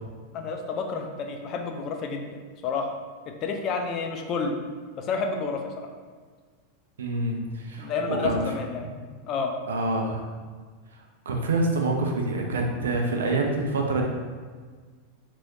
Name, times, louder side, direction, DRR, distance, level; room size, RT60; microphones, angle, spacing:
voice 1, 0.3-2.3 2.6-3.0 3.3-4.6 5.0-5.9 7.8-8.9 9.3-9.5, left 4 dB, 40° left, 4 dB, 0.4 m, -30 dB
voice 2, 7.0-7.9 8.2-8.4 9.7-10.2 11.3-14.1, right 2 dB, 70° right, 1 dB, 0.5 m, -26 dB
3.1 x 3.0 x 2.6 m, 1.5 s
figure-of-eight pair, 90°, 0 cm